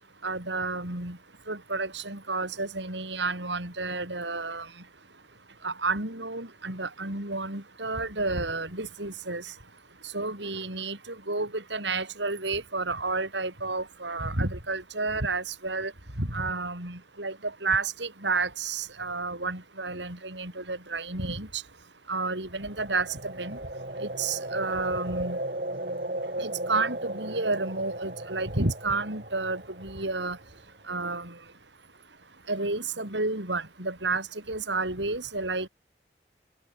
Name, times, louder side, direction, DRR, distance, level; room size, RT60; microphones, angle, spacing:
voice 1, 0.0-35.7, right 3 dB, 85° right, 7.4 m, -31 dB
sound 1, 22.6-30.6, right 1 dB, 50° right, 4.6 m, -36 dB
head